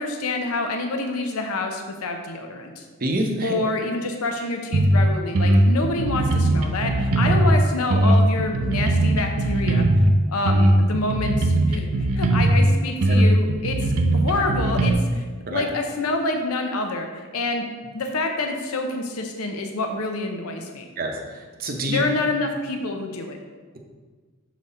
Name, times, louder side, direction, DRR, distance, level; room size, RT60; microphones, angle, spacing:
voice 1, 0.0-2.8 3.4-9.9 10.3-13.8 14.1-15.2 15.5-17.1 17.3-17.6 17.9-20.8 21.9-23.4, left 2 dB, 75° left, 4 dB, 0.6 m, -27 dB
voice 2, 3.0-3.5 13.1-13.2 15.5-15.6 21.0-22.0, right 1 dB, 40° right, 2 dB, 0.7 m, -27 dB
sound 1, 4.7-5.0 5.3-7.6 7.9-10.1 10.5-12.7 13.0-14.9, right 1 dB, 80° right, 0.6 m, -19 dB
6.3 x 4.0 x 4.2 m, 1.4 s
head